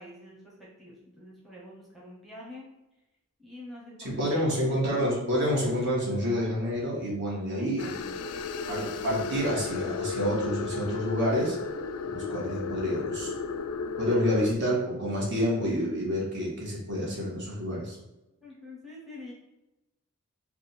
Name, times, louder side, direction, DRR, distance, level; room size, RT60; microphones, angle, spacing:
voice 1, 0.0-2.7 3.4-4.7 7.6-8.4 14.0-14.2 18.4-19.3, left 1 dB, ahead, -5 dB, 0.8 m, -47 dB
voice 2, 4.0-7.9 8.7-11.6 12.1-13.3 14.0-18.0, equal, 55° right, -4 dB, 1.2 m, -28 dB
sound 1, 7.8-14.5, left 5 dB, 75° left, 0.3 m, -34 dB
3.5 x 2.3 x 4.2 m, 0.96 s
head